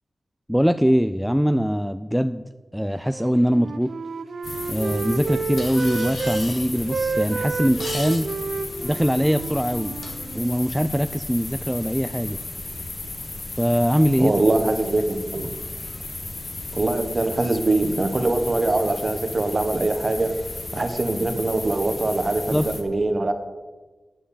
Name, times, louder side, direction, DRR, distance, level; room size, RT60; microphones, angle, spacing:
voice 1, 0.5-2.4 2.7-3.9 4.7-8.3 8.8-10.0 10.3-12.4 13.6-14.3 22.5-22.7, equal, ahead, 10 dB, 0.3 m, -22 dB
Wind instrument woodwind instrument, 3.1-6.4 6.8-10.7, right 4 dB, 65° right, 0.6 m, -30 dB
sound 1, 4.4-22.8, left 2 dB, 45° left, 1.4 m, -34 dB
sound 2, 5.6-10.5, left 2 dB, 65° left, 2.3 m, -39 dB
voice 2, 14.2-15.5 16.7-20.3 20.7-23.3, right 2 dB, 35° right, 6 dB, 1.3 m, -23 dB
9.3 x 7.6 x 8.5 m, 1.3 s
wide cardioid pair, 115°, 0 cm